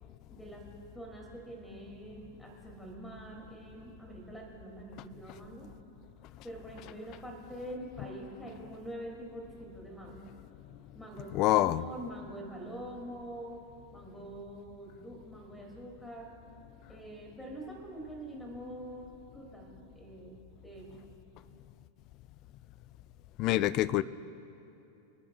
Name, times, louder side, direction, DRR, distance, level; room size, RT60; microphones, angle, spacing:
voice 1, 0.3-0.7 0.9-5.7 6.4-10.2 10.9-13.7 13.9-16.3 16.9-20.4 20.6-21.2, right 1 dB, 5° left, 0 dB, 2.6 m, -45 dB
voice 2, 11.3-11.8 23.4-24.0, left 15 dB, 40° left, 19 dB, 0.3 m, -26 dB
27.5 x 9.8 x 2.4 m, 3.0 s
figure-of-eight pair, 90°, 0 cm